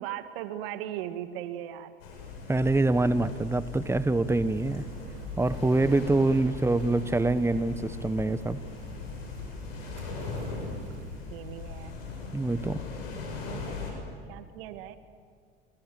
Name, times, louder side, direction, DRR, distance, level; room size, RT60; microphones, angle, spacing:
voice 1, 0.0-1.9 6.4-6.6 10.1-10.8 11.3-12.0 13.5-13.8 14.3-15.0, right 11 dB, 75° right, 10 dB, 1.9 m, -39 dB
sound 1, 2.0-13.9, left 5 dB, 85° left, 7.1 m, -39 dB
voice 2, 2.5-4.8 5.4-8.6 12.3-12.8, right 2 dB, 10° right, 14 dB, 1.2 m, -25 dB
sound 2, 4.3-11.2, right 6 dB, 55° right, 5.4 m, -46 dB
28.5 x 26.5 x 7.8 m, 2.1 s
hypercardioid pair, 70°, 29 cm